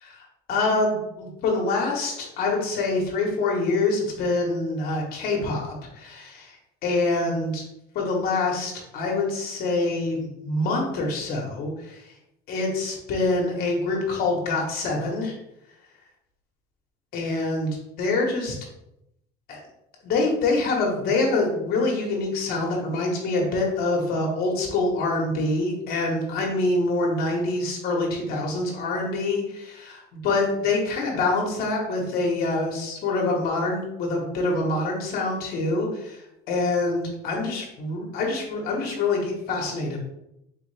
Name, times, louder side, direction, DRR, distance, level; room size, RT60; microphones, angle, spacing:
voice 1, 0.5-7.6 7.9-12.1 12.5-15.4 17.1-18.6 19.5-19.6 20.0-40.0, left 3 dB, 60° left, 0 dB, 1.2 m, -25 dB
4.1 x 3.5 x 3.3 m, 0.84 s
cardioid pair, 135°, 18 cm